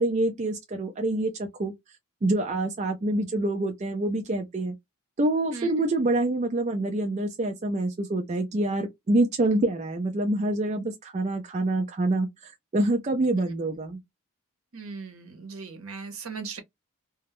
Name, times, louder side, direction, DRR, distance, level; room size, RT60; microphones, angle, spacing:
voice 1, 0.0-1.7 2.2-4.8 5.2-14.0, right 2 dB, 30° right, 0.3 m, -26 dB
voice 2, 14.7-16.6, right 4 dB, 70° right, 0.8 m, -38 dB
2.2 x 2.0 x 2.9 m
head